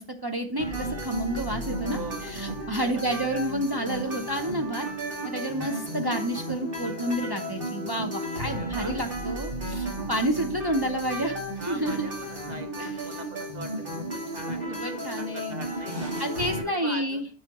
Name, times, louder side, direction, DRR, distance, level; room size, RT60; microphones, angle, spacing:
voice 1, 0.0-4.9 5.2-11.4 11.7-12.1 12.8-12.9 14.7-15.5 16.2-17.2, right 1 dB, 25° right, 2 dB, 0.7 m, -30 dB
sound 1, 0.6-16.6, right 1 dB, 65° right, 2.2 m, -34 dB
voice 2, 1.9-3.0 8.4-9.0 11.5-16.1 16.6-17.3, right 3 dB, 45° right, 5 dB, 1.0 m, -42 dB
8.0 x 6.3 x 3.0 m, 0.40 s
omnidirectional pair, 1.0 m